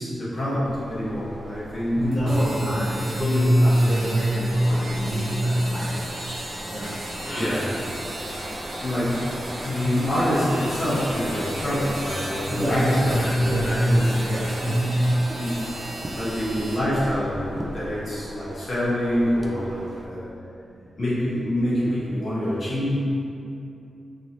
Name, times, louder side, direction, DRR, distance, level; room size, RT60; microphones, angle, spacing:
voice 1, 0.0-2.4 4.5-4.8 7.4-7.6 8.3-9.2 9.6-13.6 15.3-15.6 16.1-20.3 21.0-23.0, equal, 50° left, -10 dB, 1.1 m, -26 dB
sound 1, 0.6-20.1, right 1 dB, 30° right, 0.3 m, -37 dB
voice 2, 2.0-6.2 6.7-7.0 7.2-7.6 12.5-15.6, equal, 15° left, -11 dB, 0.8 m, -23 dB
sound 2, 2.1-16.8, right 1 dB, 65° right, 0.8 m, -37 dB
3.1 x 2.8 x 2.6 m, 2.7 s
wide cardioid pair, 105°, 0 cm